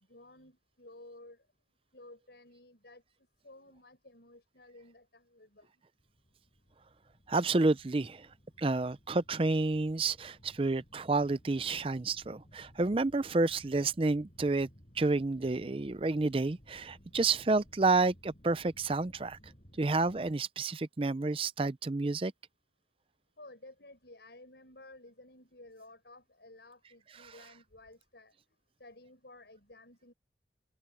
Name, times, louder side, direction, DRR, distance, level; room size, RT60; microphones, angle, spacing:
voice 1, 0.1-1.4 1.9-3.0 3.4-5.7 23.4-28.4 28.8-30.1, left 2 dB, 70° left, 5.9 m, -54 dB
sound 1, 6.0-20.3, equal, 40° left, 7.5 m, -59 dB
voice 2, 7.3-8.3 8.6-14.7 15.0-19.4 19.8-22.3, right 3 dB, 30° right, 0.5 m, -30 dB
head